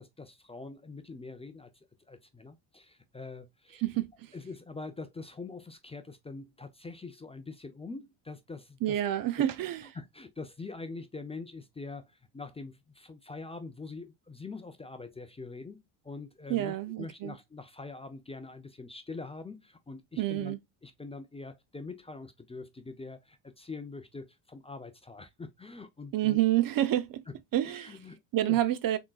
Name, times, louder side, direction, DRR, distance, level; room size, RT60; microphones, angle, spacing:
voice 1, 0.0-1.7 2.1-3.8 4.3-9.0 9.9-20.6 20.8-26.4 27.6-28.2 28.5-28.6, left 3 dB, 15° left, 0.5 m, -44 dB
voice 2, 3.8-4.3 8.8-9.9 16.5-17.4 20.2-20.6 26.1-27.2 27.5-28.0 28.3-29.0, right 13 dB, 45° right, 0.5 m, -28 dB
3.9 x 3.6 x 2.3 m
supercardioid pair, 85°, 47 cm